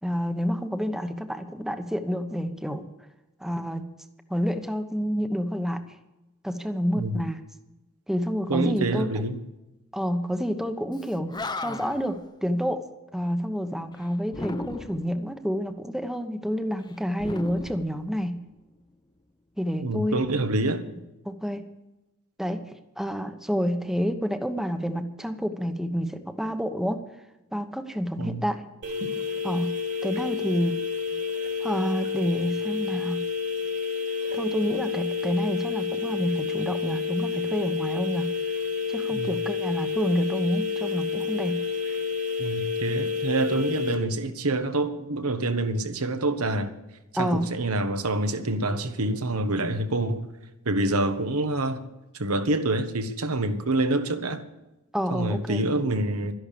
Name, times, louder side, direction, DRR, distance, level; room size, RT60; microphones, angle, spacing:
voice 1, 0.0-2.9 3.4-3.9 4.3-5.8 6.4-7.4 8.1-9.1 9.9-11.3 11.6-12.8 13.1-18.4 19.6-20.2 21.2-21.6 22.4-22.6 23.0-27.0 27.5-28.6 29.4-29.7 30.0-30.8 31.6-33.2 34.3-38.3 38.9-41.6 47.1-47.5 54.9-55.6, equal, ahead, 1.1 m, -28 dB
voice 2, 8.5-9.4 19.8-20.9 28.2-28.4 39.1-39.4 42.4-46.7 47.2-50.3 50.6-51.8 52.2-54.4 55.1-56.3, right 2 dB, 75° right, 1.4 m, -26 dB
Animal, 11.0-11.1 11.3-12.1 14.3-15.2 17.2-18.5, left 2 dB, 20° left, 0.6 m, -35 dB
sound 1, 28.8-43.9, left 6 dB, 55° right, 3.0 m, -29 dB
13.0 x 11.0 x 6.8 m
head